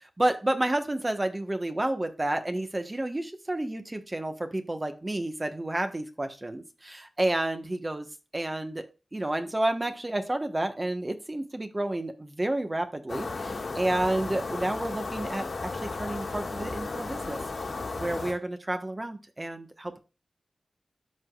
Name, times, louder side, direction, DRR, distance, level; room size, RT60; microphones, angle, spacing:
voice 1, 0.2-8.1 8.3-8.9 9.1-15.5 15.8-17.4 18.0-20.0, right 1 dB, 30° right, 6 dB, 1.3 m, -30 dB
sound 1, 13.1-18.3, left 3 dB, 85° left, 2.0 m, -34 dB
13.0 x 4.9 x 2.4 m, 0.31 s
wide cardioid pair, 60°, 0 cm